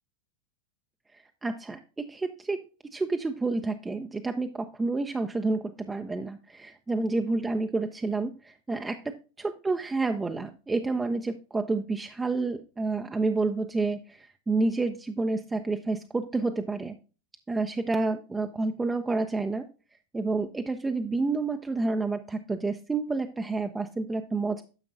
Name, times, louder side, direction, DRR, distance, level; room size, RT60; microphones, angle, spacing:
voice 1, 1.4-2.6 2.9-17.0 17.5-19.6 20.1-24.6, right 3 dB, 10° right, 6 dB, 0.5 m, -29 dB
9.8 x 6.8 x 2.6 m, 0.34 s
figure-of-eight pair, 90°, 0 cm